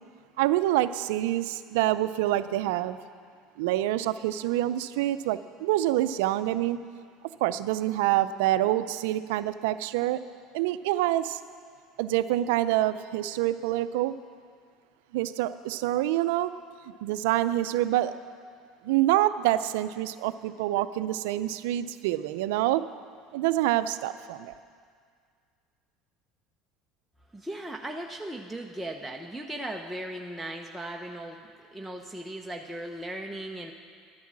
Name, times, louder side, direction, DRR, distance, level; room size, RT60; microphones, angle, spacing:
voice 1, 0.4-3.0 3.6-6.8 7.4-10.2 10.5-11.4 12.0-14.1 15.1-16.5 17.0-18.1 18.8-22.8 23.3-24.5, right 14 dB, 80° right, 13 dB, 0.5 m, -26 dB
voice 2, 27.3-33.7, right 1 dB, 5° right, 0 dB, 0.8 m, -37 dB
11.5 x 9.4 x 7.5 m, 2.1 s
supercardioid pair, 90°, 0 cm